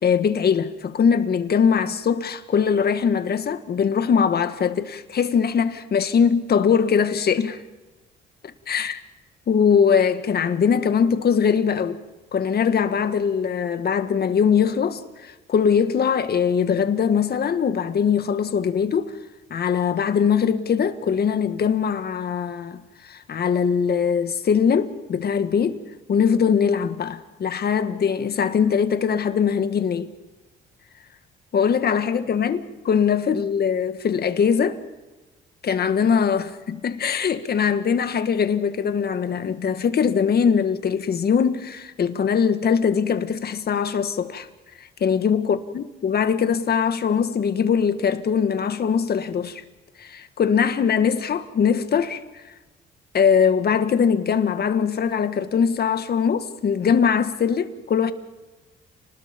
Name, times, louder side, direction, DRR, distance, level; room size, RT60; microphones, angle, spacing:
voice 1, 0.0-7.6 8.7-9.0 9.5-12.0 12.3-19.1 19.5-25.8 26.1-30.1 31.5-32.6 32.8-34.8 35.6-44.5 45.0-49.6 50.0-52.2 53.1-58.1, left 7 dB, 55° left, 1.8 m, -21 dB
30.0 x 20.0 x 5.3 m
cardioid pair, 90°, 20 cm